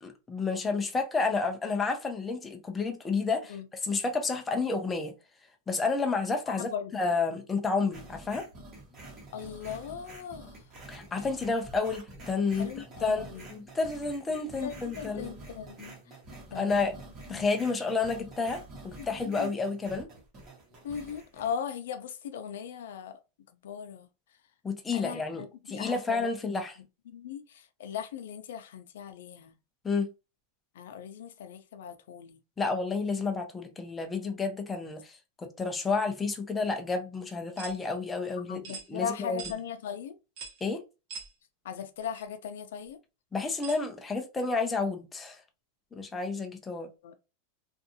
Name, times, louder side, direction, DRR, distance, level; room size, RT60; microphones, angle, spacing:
voice 1, 0.0-3.6 3.8-5.1 5.7-8.5 10.9-12.7 13.0-15.4 16.5-16.9 17.3-20.1 24.6-26.8 29.8-30.1 32.6-39.4 40.6-40.8 43.3-45.4 45.9-46.9, left 4 dB, 10° left, 0.4 m, -30 dB
voice 2, 6.5-7.0 9.3-10.6 12.5-13.5 14.6-16.0 16.5-16.9 17.3-17.4 19.0-19.5 20.8-23.2 23.6-24.1 24.9-26.3 27.1-29.5 30.7-32.4 38.5-40.2 41.6-43.0 47.0-47.2, left 7 dB, 80° left, 0.4 m, -38 dB
sound 1, 7.9-21.5, right 2 dB, 25° right, 0.9 m, -48 dB
sound 2, 37.6-37.8 38.6-38.9 39.4-39.6 40.4-40.6 41.1-41.3 42.1-42.2 43.6-43.8, right 6 dB, 50° right, 0.7 m, -41 dB
2.6 x 2.3 x 2.6 m
supercardioid pair, 165°, 0 cm